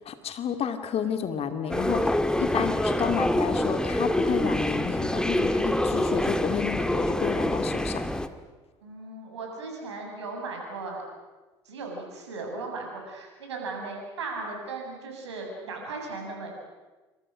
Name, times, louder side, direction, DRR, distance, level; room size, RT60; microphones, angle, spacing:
voice 1, 0.0-8.0, left 7 dB, 45° left, 8 dB, 2.6 m, -31 dB
sound 1, 1.7-8.3, left 1 dB, 5° left, 1.9 m, -26 dB
voice 2, 8.8-11.0 11.7-16.5, right 3 dB, 80° right, 1 dB, 7.1 m, -37 dB
28.0 x 26.0 x 6.5 m, 1.2 s
hypercardioid pair, 65°, 14 cm